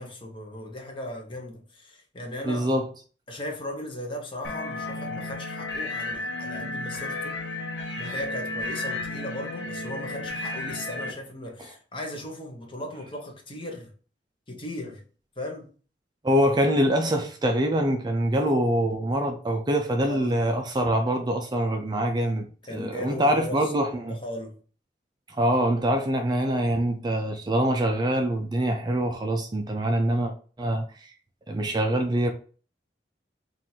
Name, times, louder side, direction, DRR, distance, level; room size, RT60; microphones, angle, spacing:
voice 1, 0.0-2.8 3.3-7.4 8.0-13.9 14.5-15.0 15.4-15.7 20.0-20.4 22.7-23.7 24.1-24.6, left 1 dB, 30° left, 1.0 m, -37 dB
voice 2, 2.4-2.9 16.2-24.2 25.3-30.3 30.6-31.1 31.5-32.3, right 1 dB, 25° right, 0.4 m, -24 dB
sound 1, 4.4-11.1, left 2 dB, 85° left, 0.9 m, -33 dB
3.7 x 2.5 x 4.3 m
head